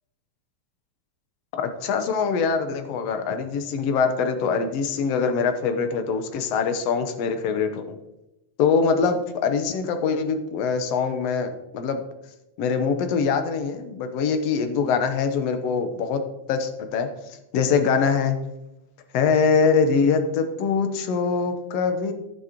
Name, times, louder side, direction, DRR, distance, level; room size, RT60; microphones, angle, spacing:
voice 1, 1.5-8.0 8.6-12.0 12.6-16.2 16.5-17.1 17.5-18.4 19.1-22.1, left 5 dB, 65° left, 7 dB, 1.8 m, -23 dB
15.5 x 6.4 x 2.9 m, 0.92 s
omnidirectional pair, 3.5 m